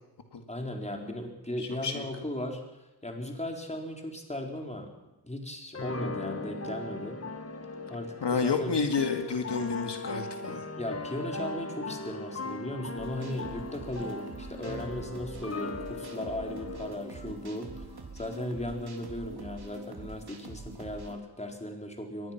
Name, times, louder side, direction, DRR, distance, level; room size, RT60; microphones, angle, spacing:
voice 1, 0.5-2.6 3.0-4.9 5.2-7.2 7.9-8.8 10.8-17.8 18.1-22.3, left 1 dB, 15° left, 2 dB, 4.2 m, -37 dB
voice 2, 1.6-2.0 8.2-10.6, left 5 dB, 75° left, 5 dB, 2.3 m, -30 dB
sound 1, 5.7-17.0, left 3 dB, 35° left, 1.6 m, -39 dB
sound 2, 13.0-21.1, right 2 dB, 65° right, 3.9 m, -44 dB
23.0 x 19.5 x 6.0 m, 1.0 s
wide cardioid pair, 95°, 41 cm